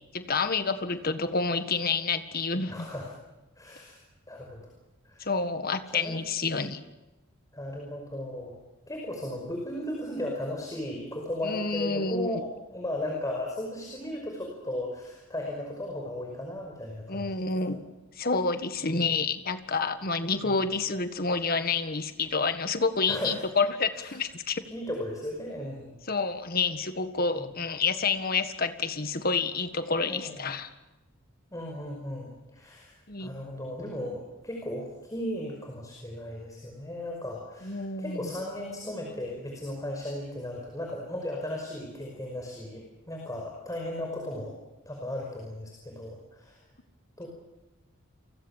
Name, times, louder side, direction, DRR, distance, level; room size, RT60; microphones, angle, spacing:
voice 1, 0.1-2.9 5.2-6.8 11.4-12.4 17.1-17.8 18.2-24.6 26.1-30.7 33.1-33.3 37.6-38.3, left 4 dB, 45° left, 9 dB, 1.7 m, -28 dB
voice 2, 2.7-3.1 3.6-4.0 4.3-4.6 5.1-5.3 5.9-6.2 7.5-8.6 8.9-12.5 12.7-17.4 17.7-17.8 18.8-19.1 20.4-20.6 23.1-23.4 24.0-24.1 24.7-26.0 27.3-27.5 30.0-30.5 31.5-32.9 33.2-44.5 44.9-46.6 47.2-47.3, left 1 dB, 15° left, 0 dB, 5.4 m, -36 dB
30.0 x 24.0 x 7.4 m, 1.0 s
head